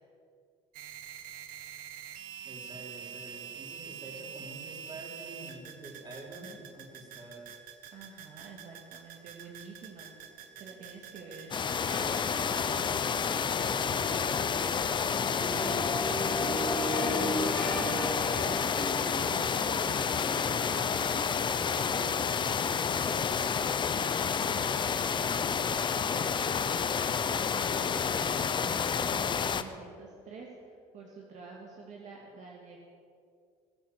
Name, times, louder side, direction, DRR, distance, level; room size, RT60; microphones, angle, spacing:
sound 1, 0.7-12.9, right 9 dB, 80° right, 1.5 m, -46 dB
voice 1, 2.4-7.5 13.0-13.7 15.5-16.4 24.4-26.9, right 2 dB, 30° right, -2 dB, 5.0 m, -48 dB
voice 2, 7.9-12.3 12.5-13.3 15.5-16.3 17.0-18.6 19.0-21.1 21.5-22.8 27.9-32.8, right 4 dB, 55° right, -1 dB, 2.4 m, -48 dB
sound 2, 11.4-24.0, equal, 10° left, 3.6 m, -38 dB
sound 3, 11.5-29.6, left 6 dB, 35° left, 0.9 m, -29 dB
20.0 x 8.6 x 8.3 m, 2.3 s
cardioid pair, 105°, 14 cm